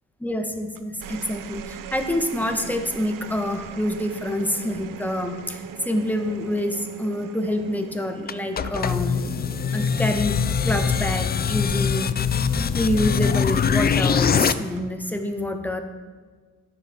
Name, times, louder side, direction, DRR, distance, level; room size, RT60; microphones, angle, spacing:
voice 1, 0.2-9.3 9.7-10.4 10.6-12.1 12.7-15.8, left 1 dB, 5° left, 5 dB, 1.2 m, -27 dB
sound 1, 0.8-13.4 14.6-15.0, right 8 dB, 50° right, 0.7 m, -41 dB
sound 2, 8.3-14.5, left 6 dB, 25° left, 0.4 m, -22 dB
9.7 x 6.9 x 3.6 m, 1.5 s
supercardioid pair, 55°, 40 cm